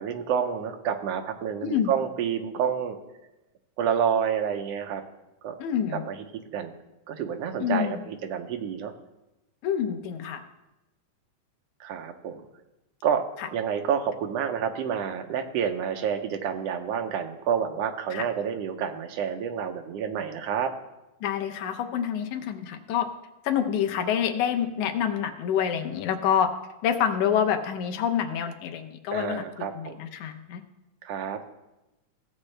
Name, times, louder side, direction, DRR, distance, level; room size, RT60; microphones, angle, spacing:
voice 1, 0.0-3.0 3.8-5.0 5.4-5.5 6.1-6.7 7.1-8.9 11.8-12.4 13.0-13.2 13.5-20.7 29.1-30.0 31.0-31.4, right 7 dB, 70° right, 5 dB, 1.7 m, -29 dB
voice 2, 1.6-1.9 5.6-6.0 7.6-8.0 9.6-10.4 18.1-18.2 21.2-23.1 23.4-26.5 26.8-30.6, left 8 dB, 85° left, 5 dB, 2.2 m, -27 dB
16.0 x 7.2 x 3.3 m, 0.98 s
omnidirectional pair, 3.3 m